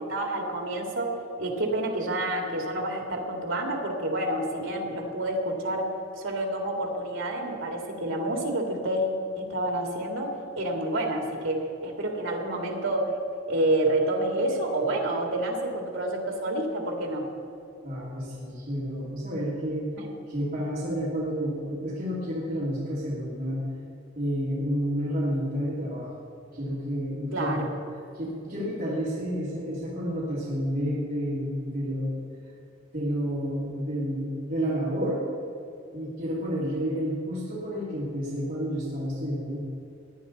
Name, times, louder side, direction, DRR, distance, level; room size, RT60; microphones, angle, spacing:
voice 1, 0.0-9.1 9.4-13.1 13.5-17.3 20.0-20.1 27.3-27.7, right 1 dB, 85° right, 2 dB, 2.1 m, -28 dB
voice 2, 17.8-19.9 20.3-23.7 24.2-26.1 26.5-27.6 28.1-32.2 32.9-35.2 35.9-39.6, equal, 50° right, -9 dB, 2.6 m, -30 dB
17.0 x 9.9 x 4.1 m, 2.6 s
head